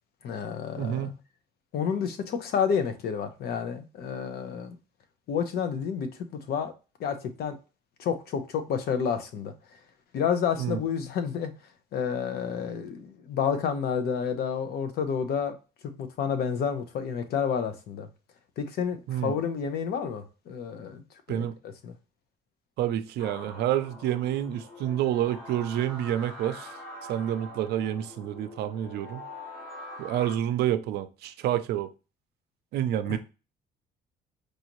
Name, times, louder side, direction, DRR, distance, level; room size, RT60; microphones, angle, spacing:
voice 1, 0.2-1.1 1.7-4.8 5.3-6.1 6.5-6.7 7.0-7.6 8.0-9.5 10.1-11.5 11.9-15.6 16.0-18.1 18.6-21.0 21.3-21.4 21.8-21.9 33.1-33.2, left 7 dB, 70° left, 0.9 m, -29 dB
voice 2, 0.8-1.1 10.6-10.8 19.1-19.3 21.3-21.6 22.8-26.7 27.1-29.3 30.0-31.9 32.7-33.2, right 11 dB, 75° right, 0.5 m, -28 dB
sound 1, 23.2-30.4, left 1 dB, 55° left, 2.5 m, -44 dB
4.8 x 2.7 x 3.0 m
cardioid pair, 110°, 17 cm